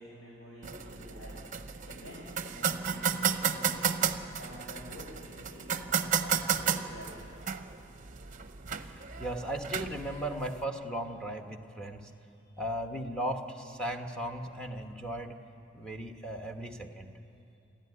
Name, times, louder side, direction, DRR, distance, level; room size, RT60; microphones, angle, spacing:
voice 1, 0.0-7.1 12.3-12.6, equal, 70° left, -4 dB, 4.6 m, -49 dB
sound 1, 0.6-10.6, right 7 dB, 40° right, 0.8 m, -33 dB
voice 2, 8.9-12.1 12.6-15.4 15.7-17.1, right 1 dB, 5° left, 3 dB, 1.1 m, -37 dB
28.5 x 11.5 x 9.7 m, 2.7 s
head